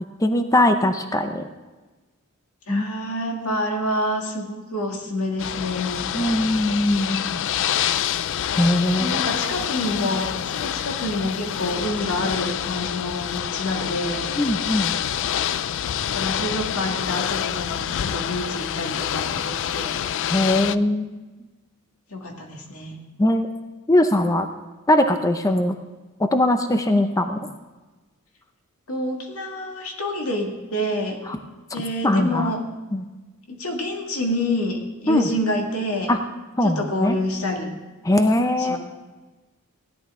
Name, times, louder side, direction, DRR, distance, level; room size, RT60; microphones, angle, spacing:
voice 1, 0.2-1.5 2.7-2.8 6.1-7.4 8.6-9.1 14.4-14.9 20.3-21.1 23.2-23.5 23.9-24.5 24.9-25.7 26.2-27.6 31.3-31.4 32.0-32.5 32.9-33.1 35.1-35.3 36.1-36.2 36.6-37.2 38.0-38.8, left 1 dB, 15° left, 7 dB, 0.6 m, -20 dB
voice 2, 2.7-6.1 9.0-14.3 16.0-20.0 22.1-23.0 28.9-31.2 31.7-32.6 33.5-36.2 36.6-37.8 38.6-38.8, left 1 dB, 90° left, 1 dB, 2.0 m, -27 dB
Ocean / Boat Water vehicle, 5.4-20.8, left 10 dB, 60° left, 0.4 m, -27 dB
16.0 x 11.0 x 3.7 m, 1.2 s
head